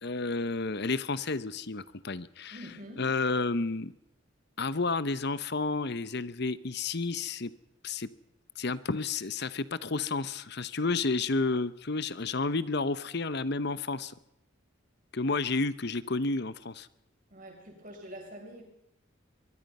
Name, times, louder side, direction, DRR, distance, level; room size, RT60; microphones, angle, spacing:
voice 1, 0.0-2.6 3.0-3.9 4.6-7.5 7.8-8.1 8.6-14.1 15.1-16.9, left 3 dB, 55° left, 16 dB, 0.9 m, -31 dB
voice 2, 2.5-3.1 17.3-18.6, equal, 40° right, 1 dB, 7.6 m, -45 dB
24.0 x 23.5 x 5.5 m, 0.80 s
head